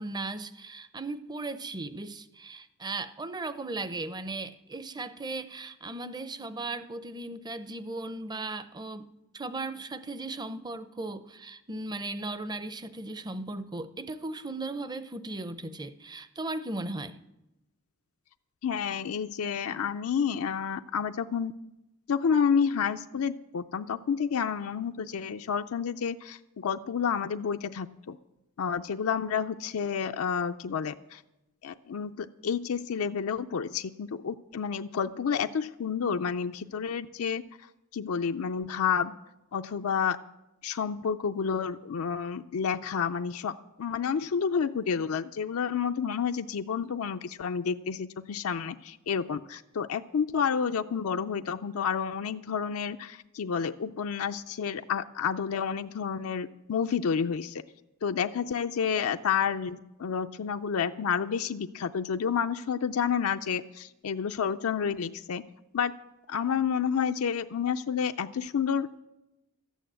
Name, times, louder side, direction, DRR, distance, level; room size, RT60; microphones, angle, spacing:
voice 1, 0.0-9.0 9.3-17.2, right 2 dB, 20° right, 13 dB, 0.6 m, -37 dB
voice 2, 18.6-21.5 22.1-28.2 28.6-31.2 31.6-37.4 37.9-39.1 39.5-40.2 40.6-57.6 58.0-65.4 65.7-65.9 66.3-69.0, left 6 dB, 75° left, 8 dB, 0.4 m, -30 dB
13.5 x 9.2 x 7.5 m, 0.95 s
head